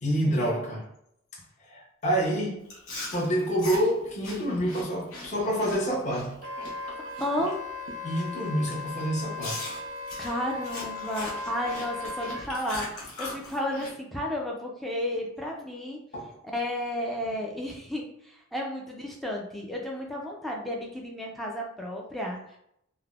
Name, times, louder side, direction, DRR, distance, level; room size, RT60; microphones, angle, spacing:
voice 1, 0.0-0.9 1.7-2.7 3.1-6.4 8.0-9.7 16.1-16.4, equal, 35° left, 0.7 m, -27 dB
Chewing mastication, 2.7-7.5 7.9-8.2 8.7-8.8 9.4-13.9, left 2 dB, 85° left, 0.8 m, -40 dB
Wind instrument woodwind instrument, 6.4-12.5, left 3 dB, 70° right, 0.4 m, -37 dB
voice 2, 7.2-7.6 10.2-16.0 16.5-22.6, left 1 dB, ahead, 0.3 m, -32 dB
3.2 x 2.0 x 2.3 m
head